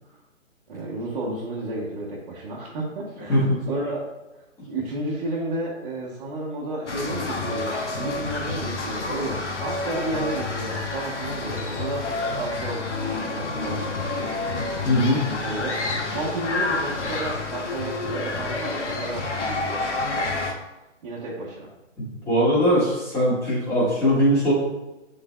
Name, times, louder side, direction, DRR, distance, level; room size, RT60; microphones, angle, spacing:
voice 1, 0.7-4.1 4.3-14.3 15.4-19.8 20.1-20.4 21.0-21.7, right 1 dB, 35° right, -6 dB, 1.3 m, -32 dB
sound 1, 6.9-20.5, left 3 dB, 65° left, 1.2 m, -29 dB
voice 2, 14.8-15.2 22.0-24.5, equal, 5° left, -8 dB, 1.7 m, -21 dB
11.5 x 3.9 x 2.2 m, 1.0 s
figure-of-eight pair, 150°, 38 cm